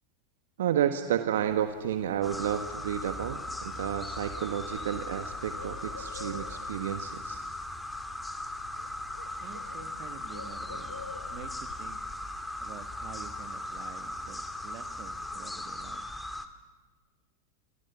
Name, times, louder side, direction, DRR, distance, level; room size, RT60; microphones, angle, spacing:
voice 1, 0.6-7.4, right 10 dB, 65° right, 8 dB, 1.4 m, -31 dB
Bird, 1.4-15.4, left 6 dB, 80° left, 1.5 m, -50 dB
sound 1, 2.2-16.5, left 1 dB, 5° left, 2.1 m, -38 dB
voice 2, 9.4-12.0 12.6-16.1, right 10 dB, 45° right, 9 dB, 2.2 m, -48 dB
27.0 x 25.0 x 7.1 m, 1.3 s
figure-of-eight pair, 90°, 0 cm